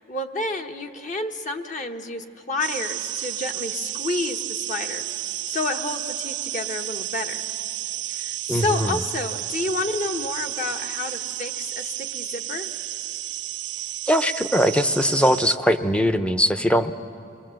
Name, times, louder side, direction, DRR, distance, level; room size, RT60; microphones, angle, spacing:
voice 1, 0.0-5.0 5.5-7.4 8.1-12.7, left 2 dB, 45° left, 5 dB, 1.1 m, -30 dB
sound 1, 2.6-15.6, right 14 dB, 70° right, 0.6 m, -32 dB
voice 2, 8.5-9.0 14.1-16.9, equal, 5° left, 10 dB, 0.6 m, -21 dB
27.0 x 20.5 x 7.7 m, 2.8 s
head